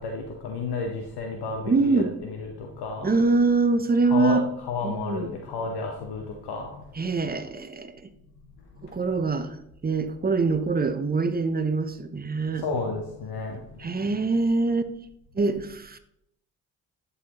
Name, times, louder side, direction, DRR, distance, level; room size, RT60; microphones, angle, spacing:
voice 1, 0.0-3.1 4.1-6.7 12.6-13.6, left 3 dB, 65° left, 2 dB, 1.0 m, -31 dB
voice 2, 1.7-2.1 3.0-4.4 4.8-5.3 7.0-7.9 8.8-12.7 13.8-14.9 15.4-16.0, right 3 dB, 20° right, 10 dB, 0.7 m, -24 dB
11.0 x 4.2 x 2.9 m, 0.79 s
hypercardioid pair, 45°, 42 cm